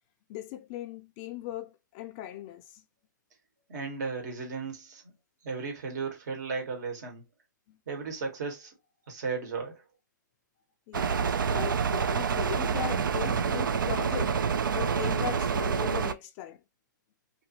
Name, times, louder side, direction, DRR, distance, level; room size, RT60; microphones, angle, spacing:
voice 1, 0.3-2.8 7.7-7.8 10.9-14.4 14.7-16.6, left 14 dB, 30° left, 0.3 m, -38 dB
voice 2, 3.7-5.0 5.4-7.2 7.9-8.7 9.1-9.8, right 4 dB, 60° right, 1.4 m, -35 dB
sound 1, 10.9-16.1, right 6 dB, 80° right, 0.4 m, -27 dB
2.7 x 2.6 x 2.7 m
hypercardioid pair, 130°, 11 cm